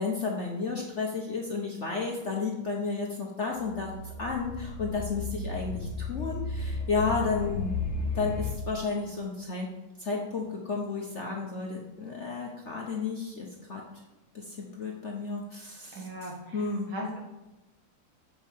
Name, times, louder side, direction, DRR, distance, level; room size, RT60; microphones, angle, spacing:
voice 1, 0.0-3.9 4.2-7.7 8.1-9.7 10.0-13.8 14.3-16.9, left 4 dB, 45° left, -1 dB, 1.0 m, -32 dB
sound 1, 3.6-8.6, left 3 dB, 85° left, 1.9 m, -34 dB
voice 2, 15.9-17.2, equal, 75° right, -1 dB, 2.7 m, -38 dB
7.4 x 6.5 x 5.3 m, 1.0 s
omnidirectional pair, 2.3 m